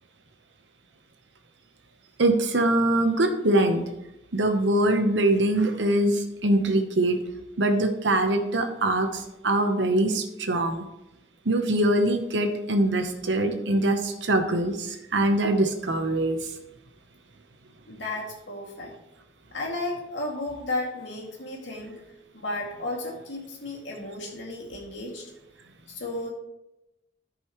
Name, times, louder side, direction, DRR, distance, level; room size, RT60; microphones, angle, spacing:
voice 1, 2.2-3.8 4.3-7.2 7.6-10.8 11.4-16.4, right 1 dB, 80° right, 6 dB, 1.0 m, -23 dB
voice 2, 17.9-18.9 19.5-22.0 22.3-25.3 25.9-26.3, left 2 dB, 85° left, -2 dB, 2.4 m, -33 dB
14.0 x 5.4 x 3.1 m, 0.92 s
head